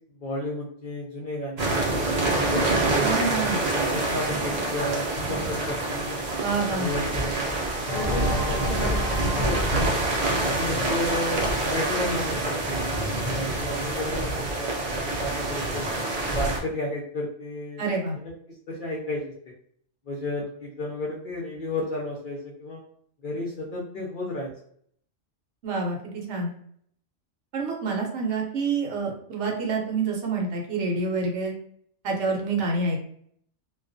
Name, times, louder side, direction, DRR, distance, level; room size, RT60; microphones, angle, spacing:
voice 1, 0.1-3.1 3.6-6.2 6.7-8.3 8.5-9.9 10.4-12.8 13.2-15.9 16.3-17.8 18.2-19.5 20.1-22.8 23.2-24.5, left 1 dB, 60° left, -3 dB, 0.5 m, -33 dB
sound 1, 1.6-16.6, right 2 dB, 50° right, 0.4 m, -26 dB
voice 2, 3.0-3.6 6.4-6.9 17.8-18.2 25.6-26.5 27.5-31.5 32.0-33.0, right 3 dB, 70° right, 0 dB, 0.9 m, -27 dB
sound 2, 7.9-12.3, left 2 dB, 75° left, 0.9 m, -34 dB
2.3 x 2.2 x 2.5 m, 0.64 s
omnidirectional pair, 1.3 m